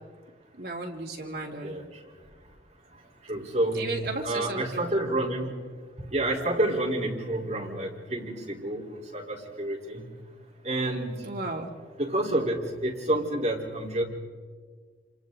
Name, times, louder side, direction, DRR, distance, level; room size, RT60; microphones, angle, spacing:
voice 1, 0.6-1.7 3.7-4.8 11.2-11.7, right 2 dB, 60° right, 0 dB, 3.1 m, -34 dB
voice 2, 3.3-5.5 6.1-8.8 9.1-10.0 10.6-11.3 12.0-14.0, right 1 dB, 40° right, -3 dB, 4.2 m, -29 dB
28.0 x 27.5 x 4.0 m, 1.5 s
head